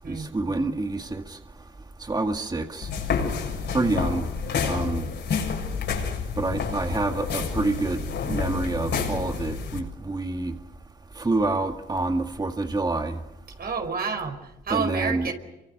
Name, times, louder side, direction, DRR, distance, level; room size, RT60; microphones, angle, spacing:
voice 1, 0.0-1.4 2.0-2.9 3.7-4.3 4.6-5.0 6.4-10.5 11.2-13.2 14.7-15.3, right 2 dB, 20° right, 2.0 m, -27 dB
sound 1, 2.8-9.8, left 6 dB, 60° left, 7.1 m, -29 dB
voice 2, 13.6-15.3, right 5 dB, 50° right, 5.1 m, -29 dB
27.5 x 25.0 x 6.7 m
cardioid pair, 90°, 20 cm